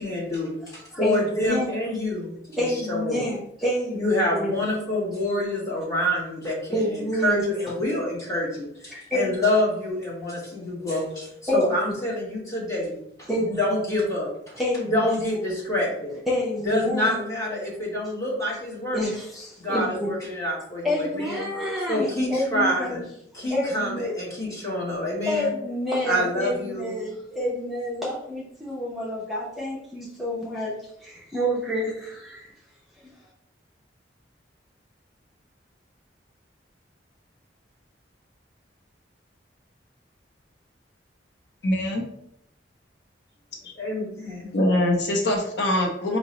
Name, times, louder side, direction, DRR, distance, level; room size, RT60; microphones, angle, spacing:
voice 1, 0.0-3.2 3.9-14.3 14.9-16.2 16.6-19.2 19.6-21.5 21.9-23.0 23.3-25.5 26.1-26.9 43.8-44.5, left 1 dB, 20° left, -6 dB, 1.1 m, -27 dB
voice 2, 0.6-1.7 2.5-4.5 6.7-7.5 8.9-9.3 11.5-11.9 13.3-13.6 14.6-15.3 16.3-17.2 18.9-20.1 20.8-23.0 23.5-24.1 25.3-32.5, equal, ahead, -6 dB, 0.5 m, -28 dB
voice 3, 41.6-42.0 44.5-46.2, left 1 dB, 65° left, 1 dB, 0.6 m, -23 dB
4.6 x 2.0 x 2.8 m, 0.74 s
head